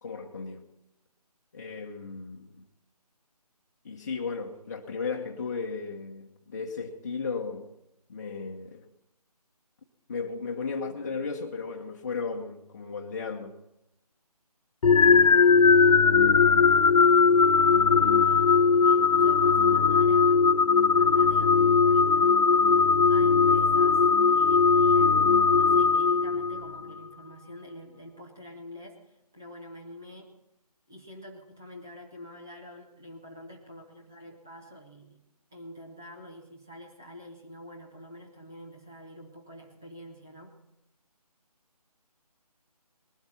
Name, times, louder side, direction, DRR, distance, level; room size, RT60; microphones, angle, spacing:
voice 1, 0.0-0.7 1.5-2.7 3.8-7.7 8.1-8.9 10.1-13.6, left 4 dB, 25° left, 1.0 m, -35 dB
sound 1, 14.8-26.8, left 5 dB, 65° left, 0.4 m, -20 dB
voice 2, 16.9-17.3 17.7-20.6 20.9-30.3 30.9-35.2 35.5-40.5, left 1 dB, 5° right, 0.5 m, -47 dB
20.5 x 12.0 x 4.3 m
figure-of-eight pair, 165°, 20 cm